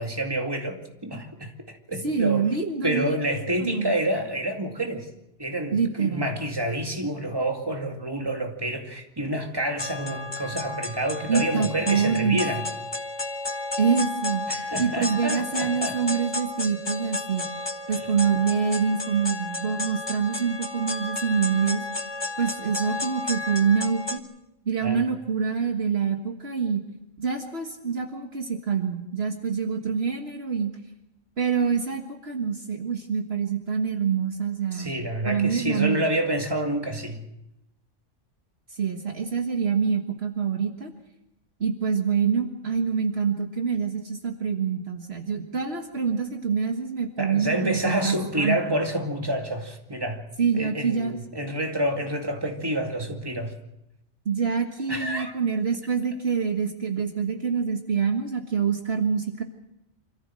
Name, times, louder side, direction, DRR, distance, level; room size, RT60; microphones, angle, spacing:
voice 1, 0.0-2.5 2.8-5.1 5.4-12.6 14.5-16.0 17.9-18.1 24.8-25.0 34.7-37.2 47.2-50.2 50.5-53.5 54.9-55.3, right 1 dB, 20° right, 2.4 m, -28 dB
voice 2, 2.0-3.2 3.6-3.9 5.7-6.3 11.3-12.4 13.8-14.4 14.8-17.4 17.9-21.8 22.4-24.2 24.7-26.8 27.2-30.7 31.4-34.9 35.2-36.1 38.7-40.9 41.6-48.8 50.4-51.2 54.3-59.4, right 6 dB, 55° right, 1.8 m, -26 dB
sound 1, 9.8-24.2, left 2 dB, 20° left, 1.3 m, -32 dB
26.5 x 14.5 x 7.6 m
omnidirectional pair, 1.2 m